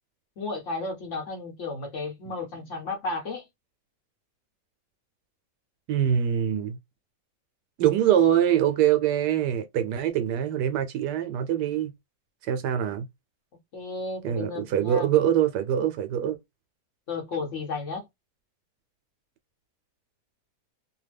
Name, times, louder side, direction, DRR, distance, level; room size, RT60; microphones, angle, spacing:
voice 1, 0.4-3.4 13.7-15.1 17.1-18.1, left 3 dB, 55° left, 1.1 m, -33 dB
voice 2, 5.9-6.8 7.8-11.9 12.4-13.1 14.2-16.4, right 10 dB, 85° right, 1.2 m, -24 dB
2.9 x 2.2 x 3.3 m
omnidirectional pair, 1.8 m